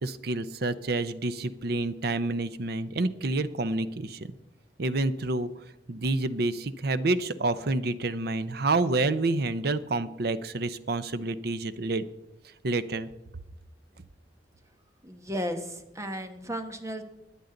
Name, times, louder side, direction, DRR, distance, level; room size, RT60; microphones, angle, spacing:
voice 1, 0.0-4.2 4.8-5.5 5.9-12.0 12.6-13.1, right 2 dB, 60° right, 13 dB, 0.7 m, -28 dB
voice 2, 15.0-17.0, equal, 15° right, 6 dB, 1.2 m, -34 dB
22.0 x 8.4 x 3.9 m, 0.92 s
head